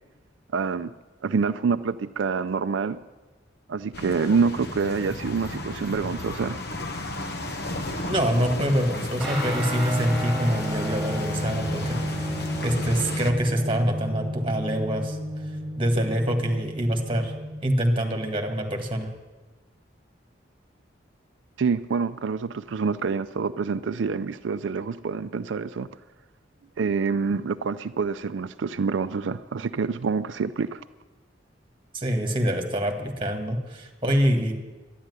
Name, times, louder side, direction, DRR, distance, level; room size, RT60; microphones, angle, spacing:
voice 1, 0.5-0.9 1.2-3.0 3.7-6.6 21.6-25.9 26.8-30.8, right 5 dB, 90° right, 11 dB, 0.4 m, -26 dB
sound 1, 3.9-13.3, left 2 dB, 60° left, 1.1 m, -34 dB
voice 2, 8.1-15.2 15.8-17.3 17.6-19.1 31.9-34.6, equal, 30° right, 4 dB, 1.8 m, -25 dB
Guitar, 9.2-18.9, equal, ahead, 6.0 m, -32 dB
12.0 x 10.0 x 9.6 m, 1.2 s
head